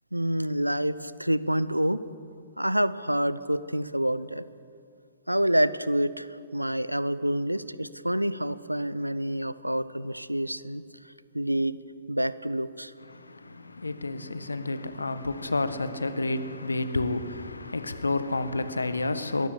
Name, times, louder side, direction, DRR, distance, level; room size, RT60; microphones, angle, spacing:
voice 1, 0.1-2.0 2.6-4.4 5.3-10.8 11.3-11.8 12.1-12.9, right 1 dB, 90° right, 0.9 m, -27 dB
voice 2, 13.0-19.5, left 2 dB, 75° left, 1.6 m, -30 dB
22.5 x 20.5 x 8.4 m
figure-of-eight pair, 115°, 0 cm